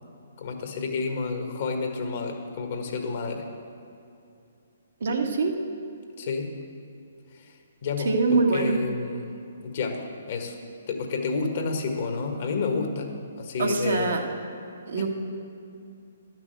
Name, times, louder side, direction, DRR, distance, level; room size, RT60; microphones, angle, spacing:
voice 1, 0.4-3.5 6.2-6.5 7.3-7.5 7.8-9.3 9.6-10.6 10.9-14.1, left 4 dB, 50° left, 3 dB, 1.6 m, -30 dB
voice 2, 5.0-5.5 8.0-8.7 13.6-14.2 14.9-15.1, right 3 dB, 65° right, 1 dB, 1.5 m, -23 dB
11.5 x 6.1 x 7.8 m, 2.6 s
figure-of-eight pair, 130°, 0 cm